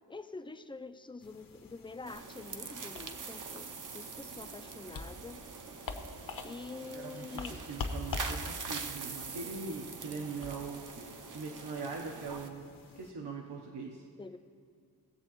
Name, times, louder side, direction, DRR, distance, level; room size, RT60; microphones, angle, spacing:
voice 1, 0.1-3.7 3.9-5.4 6.4-7.6 14.2-14.4, left 3 dB, 15° left, 10 dB, 0.3 m, -46 dB
sound 1, 1.2-13.1, left 3 dB, 55° left, 0.8 m, -46 dB
sound 2, 2.1-12.5, right 5 dB, 50° right, 0.7 m, -44 dB
voice 2, 6.9-10.9 11.3-12.7 12.9-14.0, right 4 dB, 75° right, 0 dB, 0.9 m, -41 dB
18.5 x 7.5 x 3.0 m, 2.2 s
wide cardioid pair, 130°, 40 cm